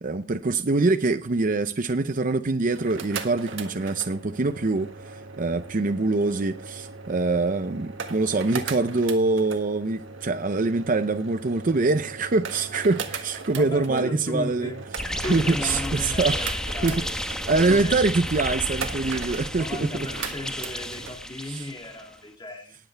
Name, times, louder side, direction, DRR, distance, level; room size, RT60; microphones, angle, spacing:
voice 1, 0.0-14.7 15.3-16.4 16.8-17.0 17.5-20.1 21.5-21.7, right 3 dB, 45° right, 0.6 m, -24 dB
sound 1, 2.6-21.2, right 4 dB, 80° right, 1.6 m, -39 dB
voice 2, 13.5-14.8 15.2-17.1 17.6-18.1 18.7-18.9 19.5-22.8, left 1 dB, 25° left, 2.2 m, -35 dB
sound 2, 15.0-22.0, left 1 dB, 5° left, 1.0 m, -32 dB
19.0 x 8.0 x 3.4 m
head